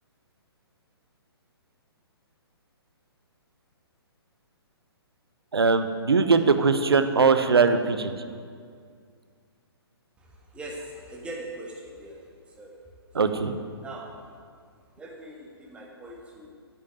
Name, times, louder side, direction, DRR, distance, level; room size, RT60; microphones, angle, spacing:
voice 1, 5.5-8.1 13.1-13.5, right 4 dB, 65° right, 9 dB, 0.9 m, -21 dB
voice 2, 10.2-12.8 13.1-13.4 13.8-14.2 15.0-16.5, right 1 dB, 10° right, -2 dB, 1.8 m, -41 dB
10.5 x 7.0 x 9.2 m, 2.2 s
figure-of-eight pair, 125°, 14 cm